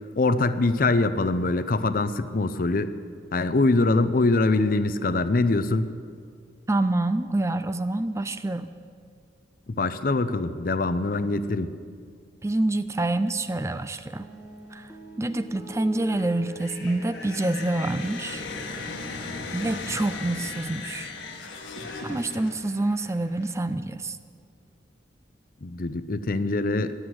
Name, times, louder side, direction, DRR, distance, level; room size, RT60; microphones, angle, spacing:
voice 1, 0.2-2.9 3.3-5.9 9.7-11.7 25.6-26.9, left 2 dB, 50° left, 12 dB, 0.6 m, -23 dB
voice 2, 6.7-8.7 12.4-14.3 14.7-14.9 15.2-18.4 19.5-21.1 22.0-24.2, right 2 dB, 15° right, 12 dB, 0.4 m, -27 dB
sound 1, 14.2-20.7, equal, ahead, 1.8 m, -45 dB
Human voice / Train, 14.6-14.8 15.2-15.4 15.9-23.5, left 2 dB, 70° left, 5.1 m, -46 dB
sound 2, 17.2-22.9, left 3 dB, 90° left, 1.5 m, -37 dB
14.5 x 11.0 x 7.9 m, 2.2 s
head